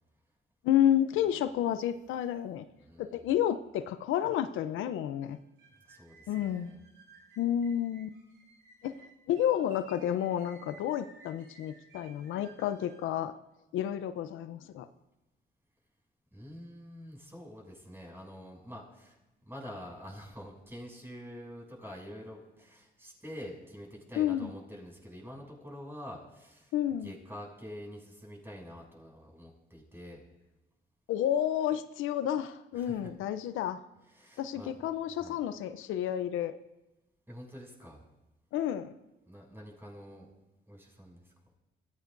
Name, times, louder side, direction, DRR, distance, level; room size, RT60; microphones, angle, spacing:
voice 1, 0.6-2.6 3.0-5.4 6.3-6.7 7.4-8.1 8.8-8.9 9.3-13.3 13.7-14.9 24.2-24.5 26.7-27.1 31.1-33.8 34.4-36.5 38.5-38.9, left 10 dB, 85° left, 11 dB, 0.7 m, -30 dB
voice 2, 2.8-3.3 5.8-6.8 16.3-19.2 19.4-26.7 27.0-30.2 32.7-33.1 34.1-34.7 35.2-35.4 37.3-38.0 39.2-40.3 40.7-41.3, equal, 10° right, -2 dB, 6.8 m, -47 dB
sound 1, 5.3-13.1, right 4 dB, 75° right, 4.4 m, -58 dB
25.5 x 15.5 x 2.6 m, 1.0 s
cardioid pair, 90°, 20 cm